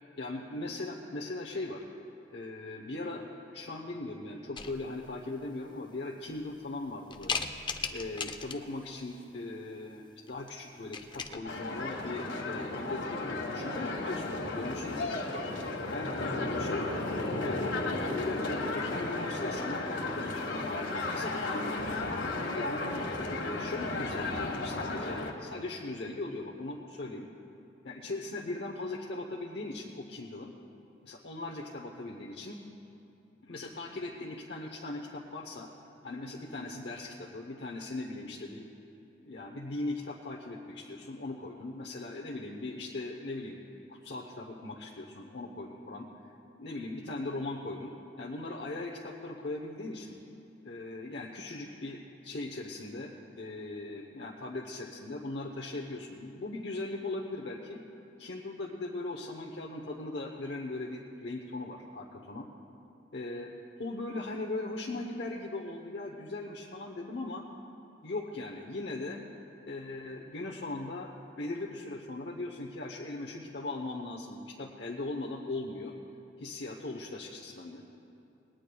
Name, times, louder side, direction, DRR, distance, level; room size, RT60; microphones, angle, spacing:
voice 1, 0.2-1.8 2.3-3.2 3.5-7.4 7.9-15.1 15.9-16.2 16.6-16.9 17.4-20.8 21.1-21.8 22.3-27.3 27.8-30.5 31.0-32.6 33.4-35.7 36.0-38.6 39.2-46.1 46.6-50.2 50.6-57.8 58.2-62.5 63.1-63.5 63.8-67.5 68.0-69.2 69.7-71.1 71.4-75.9 76.4-77.8, left 2 dB, 60° left, -1 dB, 0.9 m, -39 dB
sound 1, 4.6-5.1 5.8-5.9 6.3-6.7 7.1-8.8 10.3-10.5 10.8-11.4, left 5 dB, 25° left, 0.5 m, -37 dB
sound 2, 11.4-25.3, left 2 dB, 80° left, 1.5 m, -34 dB
20.0 x 18.0 x 2.3 m, 2.9 s
head